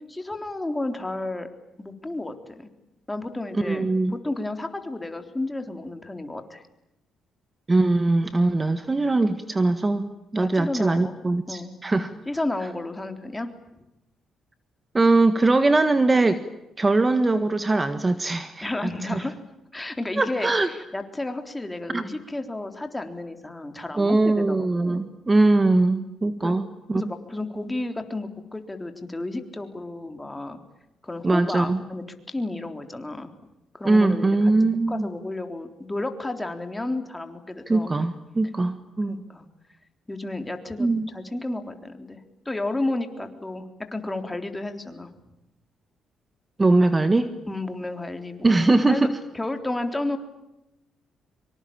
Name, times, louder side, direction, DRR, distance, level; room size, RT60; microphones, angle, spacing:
voice 1, 0.1-1.5 1.8-2.7 3.1-6.6 10.4-11.1 11.5-11.7 12.3-13.5 18.6-19.3 19.7-25.0 26.4-26.5 26.9-30.6 31.0-33.3 33.7-34.3 34.9-37.9 39.1-39.5 40.1-43.6 43.9-45.1 47.5-49.1 49.3-50.2, left 2 dB, 15° left, 6 dB, 3.7 m, -32 dB
voice 2, 3.5-4.1 7.7-10.0 10.3-12.1 14.9-16.4 16.8-19.2 20.2-20.7 21.9-22.0 23.9-26.6 26.9-27.0 31.2-31.8 33.8-35.1 37.7-39.1 40.8-41.1 46.6-47.3 48.4-49.1, right 2 dB, 20° right, 10 dB, 1.6 m, -21 dB
25.5 x 24.5 x 8.8 m, 0.92 s
cardioid pair, 90°, 0 cm